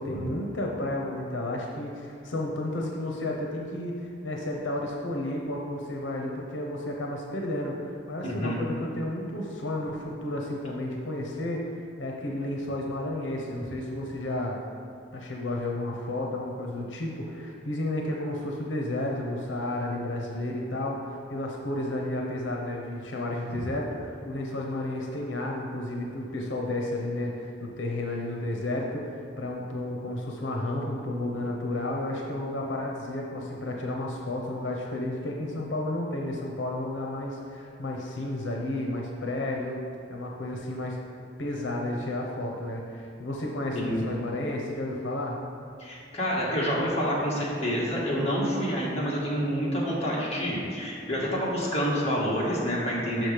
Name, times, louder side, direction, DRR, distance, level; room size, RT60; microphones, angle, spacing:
voice 1, 0.0-11.7 12.0-14.6 15.1-39.8 40.1-41.0 41.4-45.4, left 1 dB, 90° left, 0 dB, 0.8 m, -32 dB
voice 2, 8.2-8.6 23.5-23.6 43.7-44.0 45.8-53.3, equal, 35° left, -6 dB, 1.7 m, -28 dB
6.3 x 6.1 x 5.1 m, 2.4 s
head